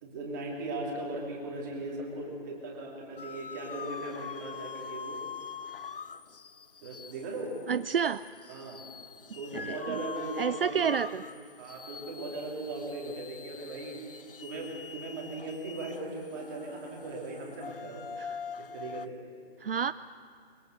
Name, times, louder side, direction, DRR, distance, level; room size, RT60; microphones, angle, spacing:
voice 1, 0.0-5.2 6.8-7.6 8.5-8.8 9.3-11.0 11.6-14.0 14.4-18.0 18.6-19.1, right 2 dB, 20° right, -3 dB, 2.9 m, -38 dB
sound 1, 3.2-19.1, left 6 dB, 60° left, 0.7 m, -44 dB
voice 2, 7.7-8.2 9.5-10.0 10.4-11.2 18.2-18.4 19.6-19.9, right 7 dB, 60° right, 14 dB, 0.4 m, -29 dB
23.0 x 21.5 x 6.5 m, 2.3 s
hypercardioid pair, 165°, 32 cm